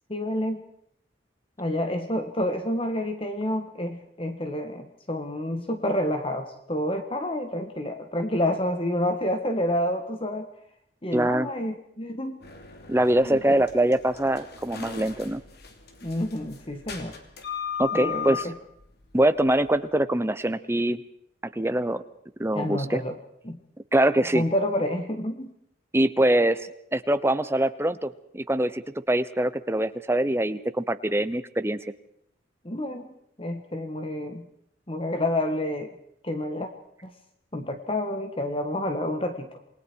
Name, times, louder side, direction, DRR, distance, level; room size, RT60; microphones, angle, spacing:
voice 1, 0.1-0.6 1.6-10.5 11.0-12.4 13.2-13.6 16.0-17.2 17.9-18.5 22.5-23.2 23.4-23.6 24.3-25.5 32.7-34.5 34.9-35.9 36.2-36.7 37.0-37.1 37.5-39.6, left 1 dB, 25° left, 7 dB, 1.6 m, -29 dB
voice 2, 11.1-11.5 12.9-15.4 17.8-18.5 19.1-21.0 21.5-22.0 22.4-23.0 23.9-24.4 25.9-31.9, right 1 dB, 10° right, 13 dB, 0.9 m, -24 dB
sound 1, 12.4-19.8, left 7 dB, 50° left, 2.8 m, -37 dB
28.0 x 21.0 x 4.7 m, 0.72 s
head